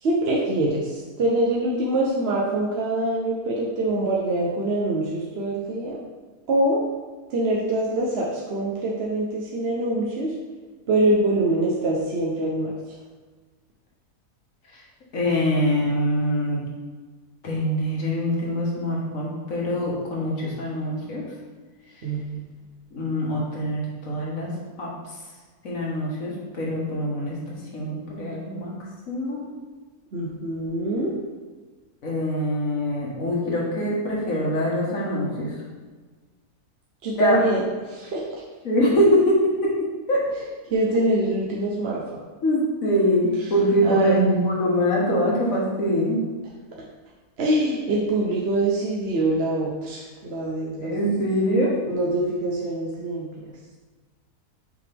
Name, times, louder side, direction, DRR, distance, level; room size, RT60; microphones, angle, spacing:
voice 1, 0.0-6.0 6.5-6.9 7.3-10.3 10.9-12.7 22.0-22.4 30.1-31.2 37.0-37.6 37.9-38.4 40.7-42.2 43.8-44.2 47.4-51.0 51.9-53.3, right 1 dB, 50° right, -3 dB, 0.9 m, -24 dB
voice 2, 15.1-16.6 17.4-21.3 22.9-24.5 24.8-24.9 25.6-27.4 27.7-28.7 29.1-29.5 32.0-35.5 37.2-37.4 38.6-39.7 40.1-40.3 42.4-46.2 50.8-51.7, equal, 60° left, -4 dB, 1.8 m, -23 dB
5.8 x 5.1 x 3.4 m, 1.4 s
omnidirectional pair, 1.6 m